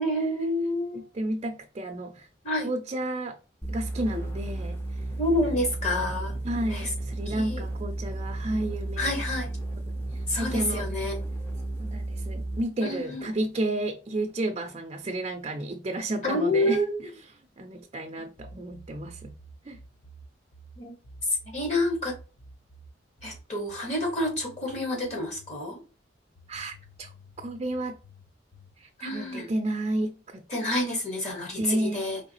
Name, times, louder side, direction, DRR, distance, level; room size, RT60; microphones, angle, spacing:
voice 1, 0.0-1.1 2.4-2.7 5.2-6.4 6.7-6.9 7.3-7.6 9.0-9.5 10.3-11.2 12.8-13.2 16.2-17.0 20.8-20.9 21.5-22.1 23.2-25.8 29.0-29.4 30.5-32.2, left 1 dB, 40° left, 1.8 m, -28 dB
voice 2, 1.1-2.3 2.6-3.4 3.7-5.0 6.4-9.2 10.1-10.9 11.8-16.8 17.6-19.3 19.7-19.8 26.5-27.1 27.4-28.0 28.8-30.4 31.6-32.0, right 1 dB, 35° right, 0.5 m, -31 dB
sound 1, 3.6-12.7, right 2 dB, 15° left, 0.6 m, -33 dB
sound 2, 18.4-25.7 26.3-28.8, right 1 dB, 70° left, 0.8 m, -51 dB
4.7 x 3.2 x 3.0 m
head